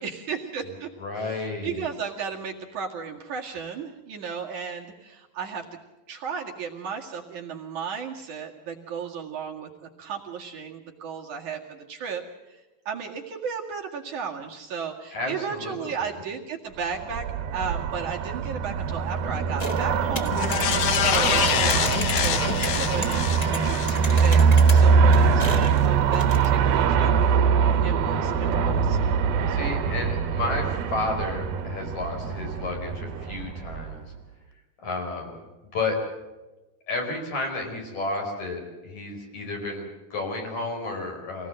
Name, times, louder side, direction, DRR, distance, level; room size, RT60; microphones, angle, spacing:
voice 1, 0.0-5.8 6.1-9.7 10.0-12.6 12.9-27.1 27.8-29.0, right 6 dB, 55° right, 0 dB, 3.3 m, -34 dB
voice 2, 1.0-1.9 15.1-16.2 29.5-34.0 34.8-35.4 35.7-36.2 36.9-41.5, left 3 dB, 50° left, 2 dB, 6.1 m, -32 dB
Aircraft, 16.9-34.2, right 6 dB, 85° right, 3.1 m, -23 dB
sound 1, 19.6-26.6, left 1 dB, 25° left, 0.9 m, -36 dB
sound 2, 20.3-24.9 25.3-25.4, left 8 dB, 75° left, 1.4 m, -26 dB
26.0 x 19.0 x 7.7 m, 1.1 s
omnidirectional pair, 4.2 m